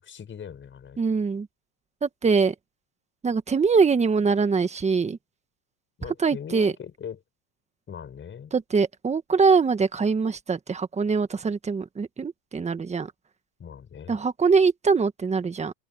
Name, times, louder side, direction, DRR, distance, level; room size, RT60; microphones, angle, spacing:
voice 1, 0.0-1.0 6.0-7.2 7.9-8.5 13.6-14.2, left 8 dB, 25° left, 6.5 m, -40 dB
voice 2, 1.0-1.5 2.0-2.5 3.2-5.2 6.2-6.7 8.5-13.1 14.1-15.7, right 5 dB, 15° right, 1.5 m, -23 dB
open air
supercardioid pair, 130°, 47 cm